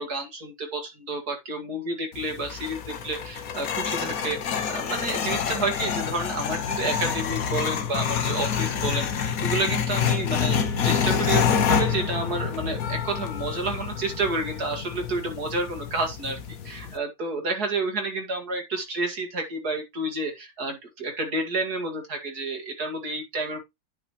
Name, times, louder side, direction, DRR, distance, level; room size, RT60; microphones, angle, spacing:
voice 1, 0.0-16.4 16.6-23.6, right 2 dB, 50° right, 2.5 m, -30 dB
sound 1, 2.1-17.0, left 7 dB, 55° left, 1.2 m, -27 dB
10.5 x 5.7 x 3.1 m
omnidirectional pair, 2.1 m